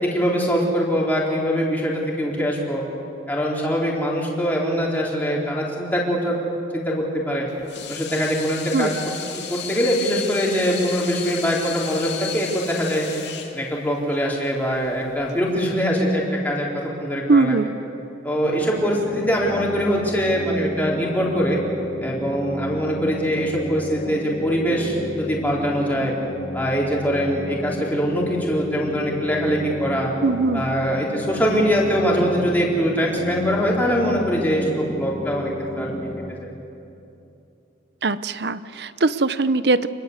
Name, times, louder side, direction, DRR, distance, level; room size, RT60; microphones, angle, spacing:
voice 1, 0.0-2.8 3.3-6.4 6.7-7.5 7.9-13.1 13.5-17.6 18.2-21.6 22.0-26.1 26.5-30.1 30.5-35.9 36.4-36.5, equal, 10° left, -4 dB, 4.2 m, -23 dB
Water tap faucet / Sink (filling or washing), 7.5-15.5, left 8 dB, 70° left, 2.6 m, -34 dB
voice 2, 17.3-17.7 30.2-30.6 38.0-39.9, right 3 dB, 65° right, 14 dB, 0.8 m, -20 dB
sound 1, 18.5-36.3, left 1 dB, 30° left, 1.9 m, -32 dB
28.5 x 21.0 x 8.2 m, 2.8 s
head